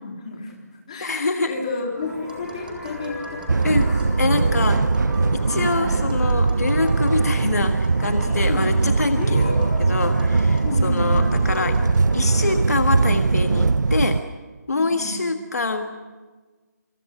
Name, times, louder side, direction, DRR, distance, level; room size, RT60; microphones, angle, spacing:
voice 1, 0.0-3.4 5.5-6.0 8.5-8.7 9.1-9.6 10.6-11.3 14.7-15.2, left 3 dB, 20° left, -1 dB, 3.8 m, -31 dB
voice 2, 1.0-1.5 3.6-3.9 4.2-4.8 5.3-9.6 9.9-11.8 12.1-14.2 14.7-15.8, left 3 dB, 60° left, 6 dB, 1.7 m, -25 dB
sound 1, 1.9-12.5, left 2 dB, ahead, 5.5 m, -36 dB
Tap, 2.3-12.7, right 1 dB, 30° right, 4.1 m, -44 dB
sound 2, 3.5-14.2, right 4 dB, 85° right, 0.8 m, -20 dB
27.5 x 25.5 x 6.2 m, 1.3 s
hypercardioid pair, 180°, 10 cm